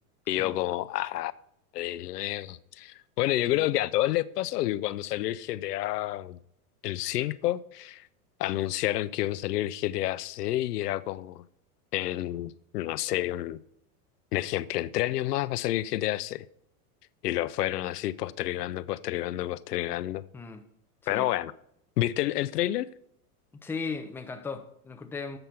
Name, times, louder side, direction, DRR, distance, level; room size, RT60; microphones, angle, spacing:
voice 1, 0.3-1.3 1.7-6.4 6.8-8.1 8.4-11.4 11.9-13.6 14.3-16.4 17.2-20.2 21.1-21.5 22.0-22.9, left 14 dB, 90° left, 0.6 m, -29 dB
voice 2, 23.5-25.4, left 4 dB, 5° left, 0.4 m, -37 dB
7.9 x 5.5 x 5.8 m
hypercardioid pair, 120°, 46 cm